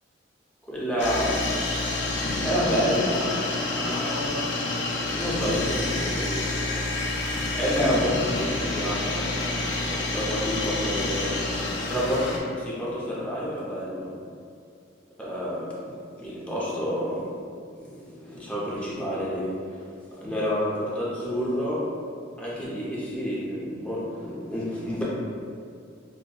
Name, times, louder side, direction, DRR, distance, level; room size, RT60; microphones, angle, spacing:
voice 1, 0.7-1.4 2.4-4.5 5.1-6.5 7.5-9.5 9.8-11.4 11.8-14.1 15.2-17.3 17.7-19.8 20.1-21.9 22.4-25.0, equal, 5° left, -8 dB, 0.6 m, -29 dB
sound 1, 1.0-12.4, left 2 dB, 65° left, 0.5 m, -28 dB
5.1 x 2.2 x 2.3 m, 2.3 s
head